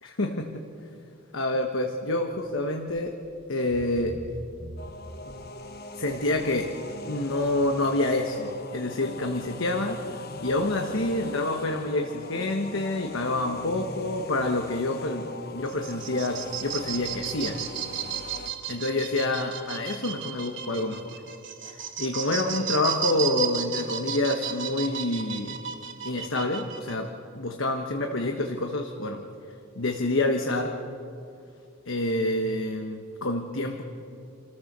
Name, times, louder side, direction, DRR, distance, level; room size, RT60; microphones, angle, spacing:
voice 1, 0.0-0.6 1.3-3.2 3.5-4.2 5.3-5.4 6.0-6.7 7.1-10.0 10.4-17.6 18.7-21.2 21.7-25.6 26.0-29.2 29.8-30.8 31.9-33.8, left 2 dB, 70° left, 4 dB, 1.2 m, -28 dB
sound 1, 3.1-3.3 3.7-5.6 6.1-6.5 6.9-7.0, right 1 dB, 30° right, 1.6 m, -42 dB
sound 2, 4.8-18.5, left 2 dB, 50° left, 1.0 m, -40 dB
sound 3, 15.7-26.9, right 8 dB, 60° right, 1.7 m, -34 dB
28.0 x 14.5 x 6.8 m, 2.6 s
head